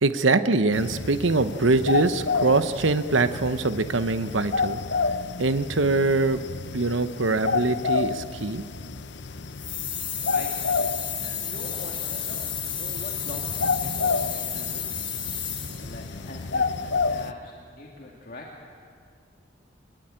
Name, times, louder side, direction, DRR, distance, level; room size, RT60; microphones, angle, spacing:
voice 1, 0.0-4.8 5.4-6.4 6.7-8.6, right 3 dB, 80° right, 11 dB, 1.0 m, -23 dB
sound 1, 0.7-17.3, left 4 dB, 65° left, 0.8 m, -30 dB
sound 2, 9.6-16.0, left 8 dB, 25° left, 3.7 m, -32 dB
voice 2, 10.2-18.5, left 2 dB, 45° left, -1 dB, 2.4 m, -43 dB
24.0 x 22.0 x 9.0 m, 2.3 s
head